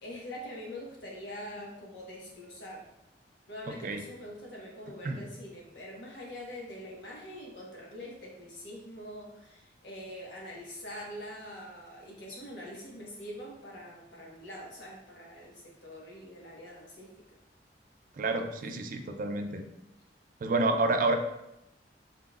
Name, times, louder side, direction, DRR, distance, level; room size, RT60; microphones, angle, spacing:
voice 1, 0.0-2.9 3.5-17.1, equal, 90° left, -3 dB, 1.2 m, -44 dB
voice 2, 3.7-4.0 5.0-5.2 18.2-19.6 20.4-21.2, right 2 dB, 50° right, 6 dB, 0.4 m, -29 dB
4.2 x 3.8 x 2.4 m, 0.86 s
head